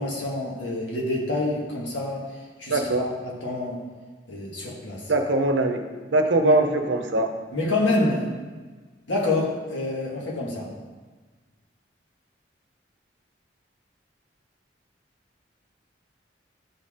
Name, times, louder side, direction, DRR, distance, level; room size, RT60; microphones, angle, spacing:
voice 1, 0.0-2.2 2.6-3.8 4.3-5.0 6.4-6.6 7.5-8.3 9.1-10.7, left 2 dB, 85° left, -3 dB, 1.8 m, -27 dB
voice 2, 2.7-3.1 5.1-5.8 6.1-7.3, right 2 dB, 80° right, 5 dB, 0.8 m, -21 dB
11.5 x 4.2 x 3.7 m, 1.4 s
head